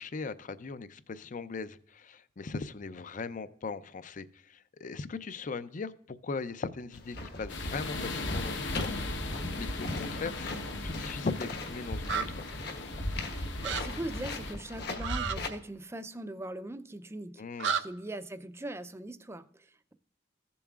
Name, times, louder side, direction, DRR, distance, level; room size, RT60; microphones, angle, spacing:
voice 1, 0.0-9.0 9.6-12.4 17.4-17.7, left 4 dB, 45° left, 14 dB, 0.5 m, -39 dB
sound 1, 6.9-15.5, left 1 dB, 60° left, 1.3 m, -38 dB
sound 2, 7.5-14.5, left 3 dB, 75° left, 1.1 m, -39 dB
sound 3, 12.0-12.2 13.6-13.8 15.0-15.4 17.6-17.8, right 7 dB, 75° right, 0.7 m, -30 dB
voice 2, 13.4-17.4 17.8-19.9, right 1 dB, 15° right, 11 dB, 0.5 m, -41 dB
15.5 x 7.0 x 2.4 m, 0.62 s
head